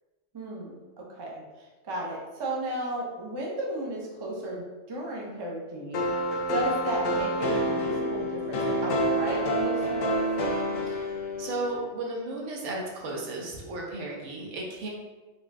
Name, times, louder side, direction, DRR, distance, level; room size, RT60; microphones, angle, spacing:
voice 1, 0.3-6.2 6.5-10.2, right 1 dB, 30° right, -3 dB, 0.5 m, -34 dB
sound 1, 5.9-11.8, right 1 dB, 70° left, 0.8 m, -28 dB
voice 2, 10.9-14.9, right 2 dB, 75° right, -2 dB, 1.1 m, -35 dB
4.0 x 2.2 x 3.6 m, 1.2 s
omnidirectional pair, 1.3 m